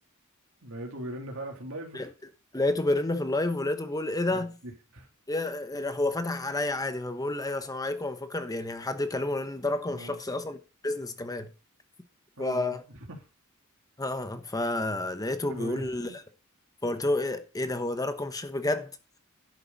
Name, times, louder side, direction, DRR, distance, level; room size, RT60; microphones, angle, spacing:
voice 1, 0.6-2.1 4.3-5.1 9.8-10.2 12.4-12.8 13.1-13.2 15.2-16.1, right 1 dB, 65° right, 3.1 m, -40 dB
voice 2, 2.5-4.5 5.3-10.6 10.8-11.5 12.4-12.8 14.0-16.1 16.8-18.9, left 2 dB, 15° left, 1.1 m, -30 dB
11.5 x 7.9 x 4.1 m
head